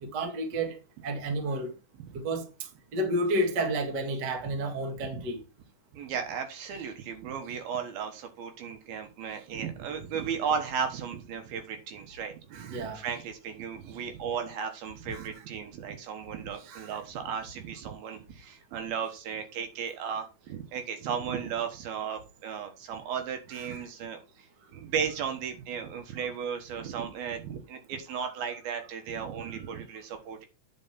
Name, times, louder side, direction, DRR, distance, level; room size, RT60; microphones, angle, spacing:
voice 1, 0.0-1.7 2.1-5.4 12.5-13.0 15.0-15.3 16.6-17.0 23.5-23.8, right 1 dB, 45° right, 1.3 m, -31 dB
voice 2, 5.9-24.5 24.7-30.5, right 7 dB, 75° right, 3.1 m, -35 dB
9.7 x 5.6 x 4.2 m
omnidirectional pair, 4.5 m